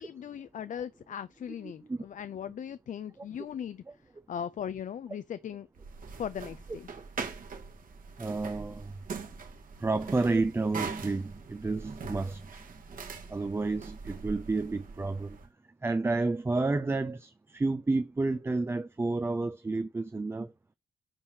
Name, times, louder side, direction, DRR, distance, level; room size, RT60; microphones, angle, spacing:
voice 1, 0.0-3.8 4.3-5.7 6.2-6.9, left 8 dB, 50° left, 0.4 m, -38 dB
voice 2, 1.6-2.1 8.2-8.9 9.8-12.6 13.3-15.4 15.8-20.5, right 3 dB, 15° right, 0.4 m, -30 dB
sound 1, 5.7-15.5, right 5 dB, 55° right, 1.5 m, -42 dB
8.7 x 2.9 x 6.4 m
wide cardioid pair, 170°, 17 cm